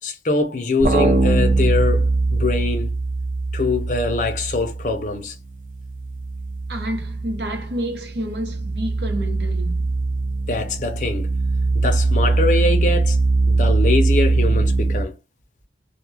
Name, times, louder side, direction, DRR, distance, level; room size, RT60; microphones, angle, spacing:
voice 1, 0.0-2.9 3.5-5.3 10.5-11.3 11.7-13.2 13.5-15.1, left 3 dB, 45° left, 0.5 m, -23 dB
sound 1, 0.8-5.2 5.5-15.0, right 3 dB, 50° right, 0.4 m, -21 dB
voice 2, 6.7-9.9, equal, 70° right, 0.8 m, -29 dB
2.2 x 2.2 x 3.2 m
head